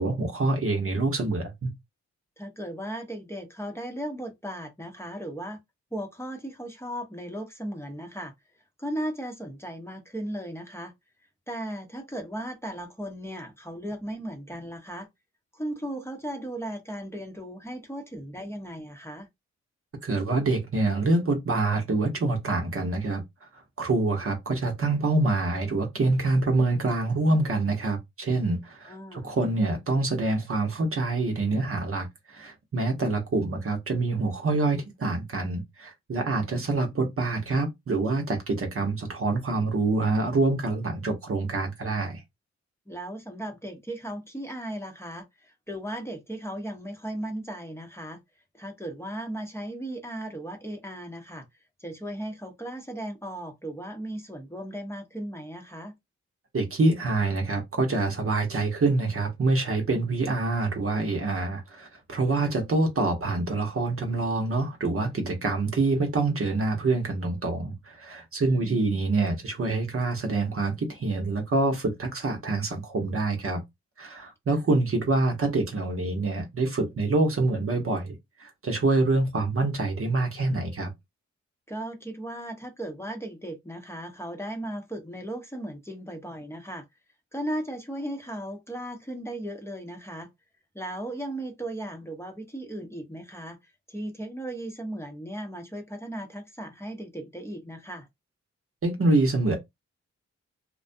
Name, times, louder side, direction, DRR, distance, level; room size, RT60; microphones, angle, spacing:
voice 1, 0.0-1.7 20.0-23.2 23.5-42.2 56.5-73.6 74.0-80.9 98.8-99.6, right 2 dB, 50° right, 0.9 m, -26 dB
voice 2, 2.4-5.6 5.9-8.3 8.8-10.9 11.5-15.1 15.5-19.3 28.9-29.3 42.9-48.2 48.5-51.5 51.8-55.9 68.5-69.0 74.5-74.6 81.7-86.8 87.3-90.3 90.7-98.1, right 1 dB, 10° left, 0.8 m, -36 dB
2.4 x 2.1 x 2.6 m
supercardioid pair, 45°, 30 cm